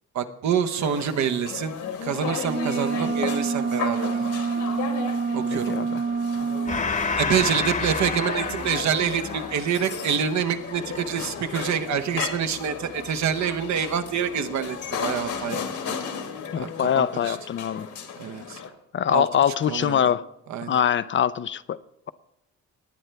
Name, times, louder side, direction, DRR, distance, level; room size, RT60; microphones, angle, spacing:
voice 1, 0.1-1.8 2.0-4.3 5.3-5.7 7.2-16.0 16.5-17.4 18.2-18.6 19.1-19.3 19.7-20.0 20.5-20.8, right 8 dB, 65° right, 0.9 m, -27 dB
Nice Restaurant In Wurzberg, 0.8-18.7, left 6 dB, 70° left, 1.6 m, -35 dB
sound 1, 2.4-6.8, right 5 dB, 40° right, 1.5 m, -27 dB
voice 2, 5.5-6.0 16.5-17.9 18.9-20.3 20.7-21.8, left 9 dB, 40° left, 0.4 m, -23 dB
Gong, 6.7-13.6, left 4 dB, 25° left, 1.0 m, -31 dB
19.0 x 9.0 x 3.4 m
cardioid pair, 90°, 30 cm